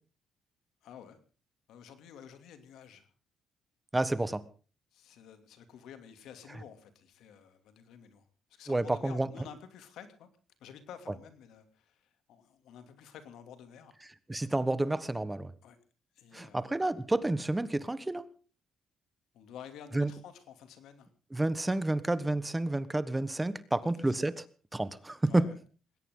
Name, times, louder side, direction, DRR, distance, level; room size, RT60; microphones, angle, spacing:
voice 1, 0.8-1.2 1.7-3.1 4.9-10.3 10.6-13.9 15.6-15.8 16.1-16.9 19.3-21.1 23.8-24.1 25.3-25.6, left 8 dB, 80° left, 9 dB, 2.7 m, -51 dB
voice 2, 3.9-4.4 8.7-9.3 14.3-15.5 16.3-18.2 19.9-20.1 21.3-24.5 24.7-25.4, right 2 dB, 15° right, 15 dB, 1.2 m, -30 dB
20.5 x 17.5 x 3.8 m, 0.37 s
cardioid pair, 90°, 0 cm